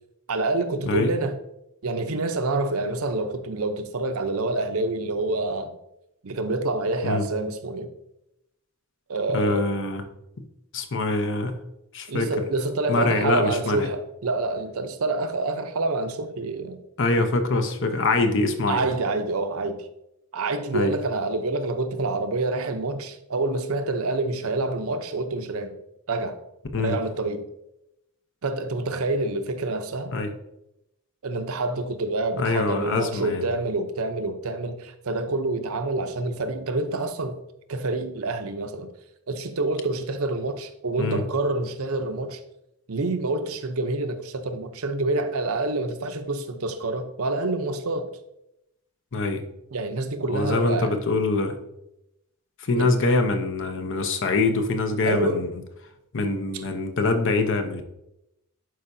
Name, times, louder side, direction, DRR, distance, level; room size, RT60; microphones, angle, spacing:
voice 1, 0.3-1.4 1.8-5.7 6.2-7.9 9.1-9.7 12.1-16.8 18.7-19.9 20.3-25.8 26.1-26.4 26.8-27.5 28.4-30.1 31.2-37.4 37.7-38.9 39.3-42.4 42.9-48.2 49.7-50.9 52.8-52.9 55.0-55.5 56.5-56.6, right 2 dB, 70° right, 0.7 m, -27 dB
voice 2, 9.3-10.0 10.7-11.5 11.9-12.3 12.9-13.9 17.0-18.9 20.7-20.9 26.7-27.0 30.1-30.3 32.4-33.5 41.0-41.2 49.1-49.5 50.3-51.5 52.6-55.5 56.1-57.8, left 3 dB, 60° left, 0.8 m, -24 dB
11.5 x 4.7 x 2.7 m
head